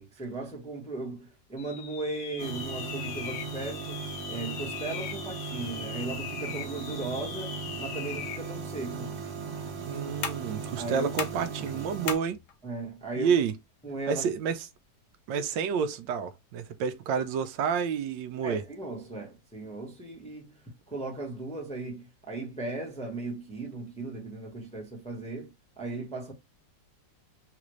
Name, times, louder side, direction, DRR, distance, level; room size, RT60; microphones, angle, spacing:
voice 1, 0.0-4.0 4.3-9.1 10.8-11.1 12.6-13.3 13.8-14.3 18.4-26.3, right 2 dB, 5° left, 0.7 m, -37 dB
sound 1, 1.6-8.5, left 9 dB, 75° left, 1.2 m, -40 dB
sound 2, 2.4-12.2, right 5 dB, 50° right, 0.8 m, -38 dB
voice 2, 9.9-12.4 13.2-13.5 14.1-14.6 15.3-18.6, right 7 dB, 85° right, 1.3 m, -29 dB
sound 3, 10.2-15.7, left 7 dB, 60° left, 0.8 m, -42 dB
4.1 x 2.4 x 3.0 m
omnidirectional pair, 2.0 m